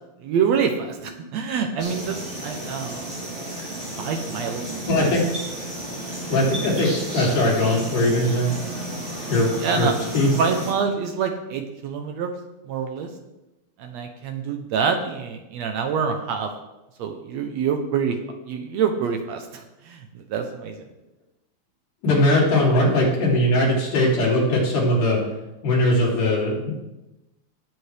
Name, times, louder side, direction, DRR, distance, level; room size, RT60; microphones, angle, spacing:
voice 1, 0.2-3.2 4.0-4.6 4.9-5.1 9.6-10.0 10.4-12.3 12.7-13.1 13.8-16.5 17.0-18.2 18.5-20.9, right 6 dB, 70° right, 5 dB, 1.8 m, -26 dB
sound 1, 1.8-10.7, right 1 dB, 20° right, 3.0 m, -32 dB
voice 2, 4.9-5.2 6.3-8.5 9.3-10.3 22.0-25.2 25.6-26.7, left 1 dB, 80° left, -4 dB, 4.6 m, -20 dB
17.5 x 7.6 x 3.4 m, 0.98 s
omnidirectional pair, 3.6 m